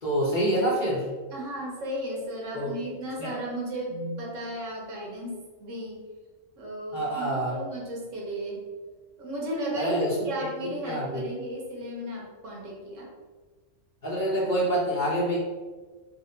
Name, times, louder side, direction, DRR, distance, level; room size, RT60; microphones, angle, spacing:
voice 1, 0.0-1.1 2.5-2.7 3.2-3.3 6.9-7.5 9.7-10.1 10.6-11.2 14.0-15.4, right 1 dB, 40° left, -5 dB, 1.0 m, -27 dB
voice 2, 1.3-6.0 6.5-8.6 9.2-13.1, right 1 dB, 75° right, -2 dB, 1.2 m, -34 dB
4.1 x 2.1 x 3.8 m, 1.4 s
omnidirectional pair, 1.3 m